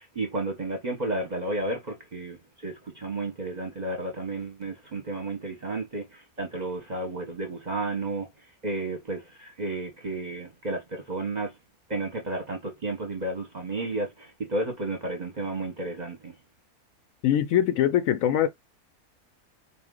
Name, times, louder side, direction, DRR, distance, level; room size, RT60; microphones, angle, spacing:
voice 1, 0.0-8.3 8.6-11.5 11.9-16.3, right 2 dB, 35° right, 0.8 m, -32 dB
voice 2, 17.2-18.5, left 11 dB, 70° left, 0.9 m, -22 dB
4.1 x 2.5 x 3.7 m
omnidirectional pair, 1.6 m